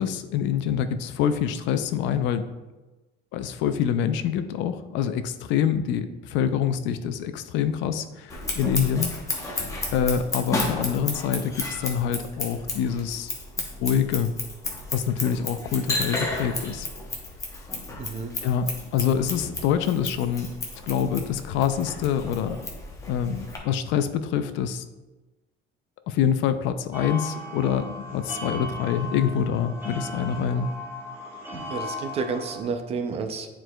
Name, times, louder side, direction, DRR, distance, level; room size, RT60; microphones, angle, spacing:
voice 1, 0.0-2.5 3.3-9.1 9.9-13.3 13.8-14.3 14.9-16.9 18.4-20.5 20.8-22.6 23.1-24.8 26.1-30.7, left 8 dB, 60° left, 10 dB, 0.5 m, -26 dB
Scissors, 8.3-23.6, left 2 dB, 15° left, 0.7 m, -33 dB
voice 2, 18.0-18.3 31.7-33.5, right 5 dB, 30° right, 6 dB, 0.4 m, -30 dB
sound 1, 26.9-32.6, left 1 dB, 10° right, 1.1 m, -37 dB
9.8 x 4.5 x 2.2 m, 1.1 s
cardioid pair, 175°, 21 cm